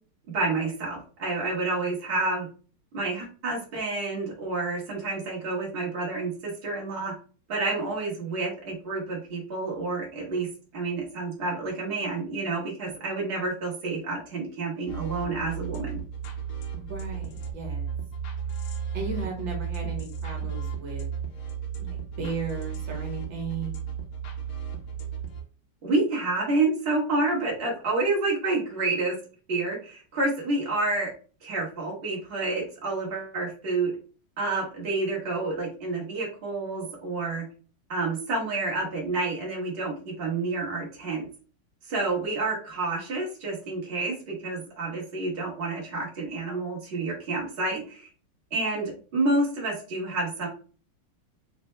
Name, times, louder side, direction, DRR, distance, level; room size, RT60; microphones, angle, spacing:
voice 1, 0.3-2.5 2.9-7.1 7.5-16.0 25.8-29.2 29.5-31.1 31.4-33.9 34.4-37.4 37.9-41.3 41.9-48.1 48.5-50.5, right 3 dB, 35° right, -3 dB, 1.2 m, -29 dB
sound 1, 14.9-25.4, right 7 dB, 85° left, 1.7 m, -34 dB
voice 2, 16.8-17.9 18.9-21.1 21.8-23.7, right 3 dB, 65° right, 0 dB, 1.6 m, -35 dB
4.3 x 2.6 x 3.1 m, 0.39 s
omnidirectional pair, 2.4 m